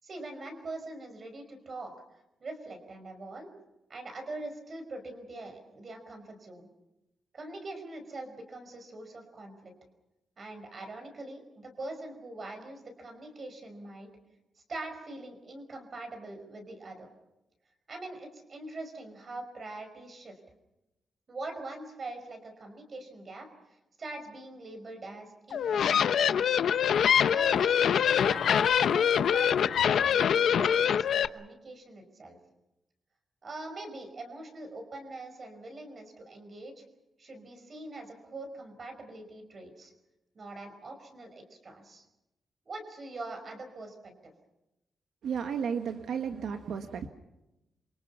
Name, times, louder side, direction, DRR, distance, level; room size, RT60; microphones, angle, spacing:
voice 1, 0.0-3.5 3.9-6.7 7.3-9.7 10.4-14.1 14.6-17.1 17.9-20.4 21.3-26.5 27.3-32.4 33.4-36.8 37.2-39.9 40.3-42.1 42.7-44.3, right 2 dB, 35° right, 6 dB, 5.3 m, -43 dB
sound 1, 25.5-31.3, left 8 dB, 65° left, 0.9 m, -24 dB
voice 2, 45.2-47.1, right 7 dB, 70° right, 6 dB, 1.5 m, -33 dB
27.5 x 25.5 x 5.7 m, 0.94 s
wide cardioid pair, 180°, 0 cm